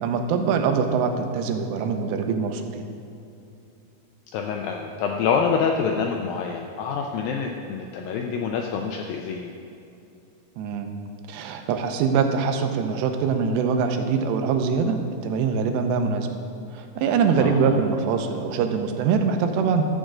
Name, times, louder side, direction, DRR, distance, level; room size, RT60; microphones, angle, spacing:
voice 1, 0.0-2.8 10.6-10.9 11.3-15.0 15.2-16.3 16.7-19.9, right 5 dB, 90° right, 6 dB, 3.0 m, -23 dB
voice 2, 4.3-9.5 17.4-17.8, left 6 dB, 85° left, 2 dB, 2.1 m, -26 dB
13.5 x 5.2 x 7.5 m, 2.7 s
omnidirectional pair, 4.8 m